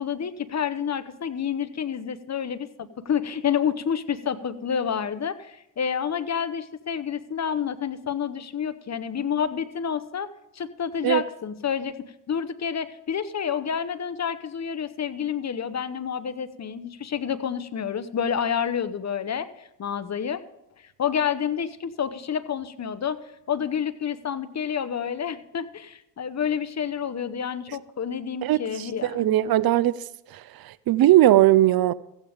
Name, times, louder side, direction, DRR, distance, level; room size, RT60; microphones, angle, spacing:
voice 1, 0.0-12.0 12.3-20.4 20.8-23.2 23.5-29.4, left 7 dB, 40° left, 0.9 m, -29 dB
voice 2, 28.4-30.0 30.3-31.9, right 14 dB, 60° right, 0.5 m, -19 dB
15.0 x 8.7 x 5.1 m
supercardioid pair, 55°, 42 cm